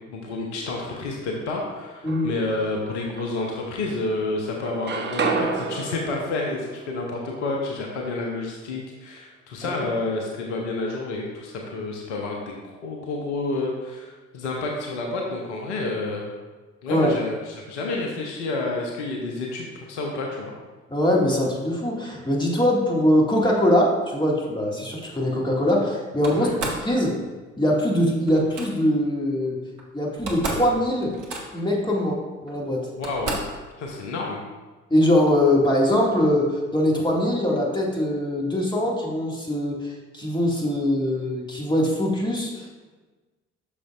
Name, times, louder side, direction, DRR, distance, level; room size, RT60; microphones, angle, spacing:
voice 1, 0.1-16.3 16.8-20.5 26.3-26.5 32.9-33.4 33.8-34.4, left 2 dB, 75° left, 0 dB, 0.9 m, -29 dB
sound 1, 1.7-2.6 3.2-4.2 4.5-8.4, right 4 dB, 30° right, 0.7 m, -32 dB
voice 2, 20.9-27.2 27.6-29.6 29.9-31.1 31.5-32.8 34.9-42.7, left 1 dB, 10° left, -2 dB, 1.8 m, -22 dB
Slam, 26.2-26.9 28.3-28.7 29.8-29.9 30.1-30.7 31.0-31.7 32.5-32.6 33.0-33.6, right 2 dB, 70° right, 1.1 m, -32 dB
8.3 x 6.3 x 2.4 m, 1.3 s
figure-of-eight pair, 45°, 35 cm